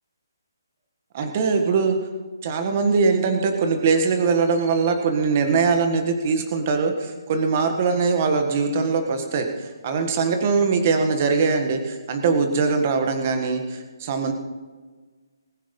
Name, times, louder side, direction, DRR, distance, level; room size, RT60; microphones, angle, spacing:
voice 1, 1.1-2.0 2.4-14.3, right 4 dB, 30° right, 5 dB, 1.7 m, -22 dB
20.0 x 9.2 x 5.5 m, 1.4 s
hypercardioid pair, 170°, 2 cm